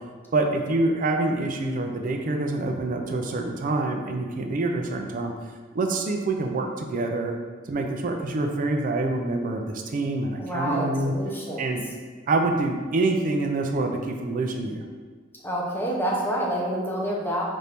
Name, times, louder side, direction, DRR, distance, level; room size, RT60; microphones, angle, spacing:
voice 1, 0.3-5.3 5.7-7.4 7.7-11.1 11.6-11.8 12.3-14.8, right 2 dB, 40° right, 3 dB, 0.4 m, -26 dB
voice 2, 10.4-11.7 15.4-17.4, equal, 10° left, -4 dB, 0.7 m, -28 dB
4.2 x 2.6 x 3.4 m, 1.5 s
head